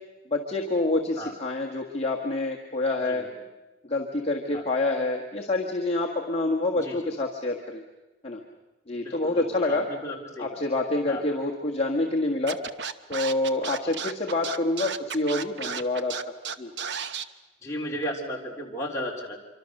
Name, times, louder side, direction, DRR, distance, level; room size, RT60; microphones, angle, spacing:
voice 1, 0.3-3.3 3.8-7.8 8.2-8.4 8.9-9.9 10.4-12.6 13.1-16.7, left 2 dB, 30° left, -1 dB, 1.6 m, -27 dB
voice 2, 9.0-10.6 11.1-11.2 13.8-13.9 17.6-19.4, equal, 15° left, -2 dB, 3.5 m, -35 dB
Scratching (performance technique), 12.5-17.2, right 6 dB, 65° right, 1.0 m, -33 dB
26.5 x 24.5 x 6.6 m, 1.1 s
head